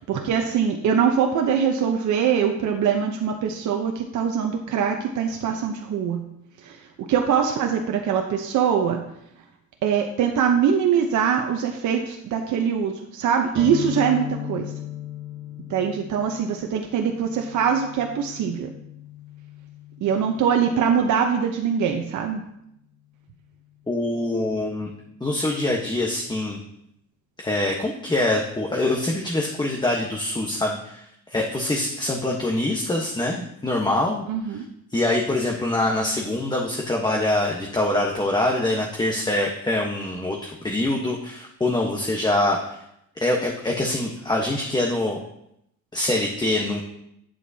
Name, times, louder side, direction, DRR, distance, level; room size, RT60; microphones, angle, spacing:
voice 1, 0.1-6.3 6.6-9.0 9.8-14.7 15.7-18.7 20.0-22.4 34.3-34.7, right 7 dB, 75° right, 3 dB, 0.8 m, -23 dB
sound 1, 13.5-21.2, left 8 dB, 20° right, 1.8 m, -37 dB
voice 2, 23.9-24.9 25.2-26.6 27.4-34.2 34.9-42.8 43.2-45.2 45.9-46.8, left 1 dB, 15° left, -1 dB, 1.1 m, -24 dB
8.8 x 7.4 x 2.8 m, 0.78 s
cardioid pair, 90°, 30 cm